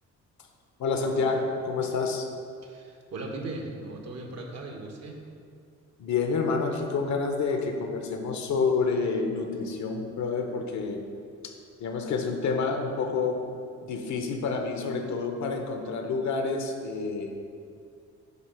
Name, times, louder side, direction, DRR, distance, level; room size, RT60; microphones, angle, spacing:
voice 1, 0.8-2.3 6.0-11.0 11.4-11.5 11.8-13.4 13.8-17.3, left 4 dB, 65° left, 4 dB, 0.9 m, -28 dB
voice 2, 2.6-5.2, right 2 dB, 55° right, 1 dB, 1.1 m, -38 dB
8.0 x 2.9 x 5.7 m, 2.4 s
cardioid pair, 90°, 30 cm